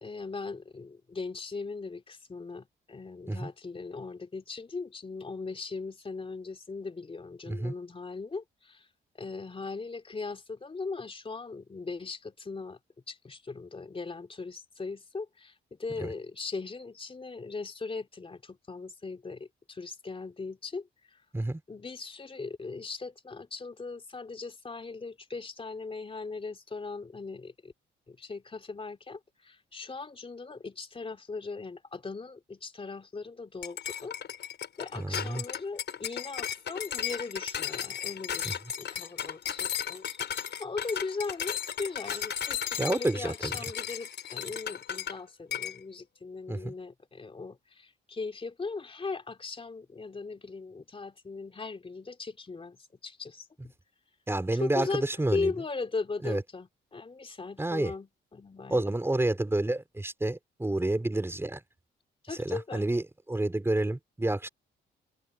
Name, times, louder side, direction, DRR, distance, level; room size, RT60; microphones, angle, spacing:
voice 1, 0.0-8.9 9.1-12.8 13.1-21.2 21.7-27.7 28.1-34.2 34.8-53.5 54.5-55.0 55.3-59.0 62.2-62.9, left 4 dB, 25° left, 3.0 m, -39 dB
sound 1, 33.6-45.2 45.5-45.8, left 9 dB, 60° left, 5.9 m, -35 dB
voice 2, 35.0-35.4 38.4-38.5 42.8-43.6 46.5-46.7 54.3-55.5 56.2-56.4 57.6-57.9 58.7-61.6 62.4-63.0 63.3-64.5, right 2 dB, 10° right, 4.6 m, -29 dB
open air
cardioid pair, 90°, 20 cm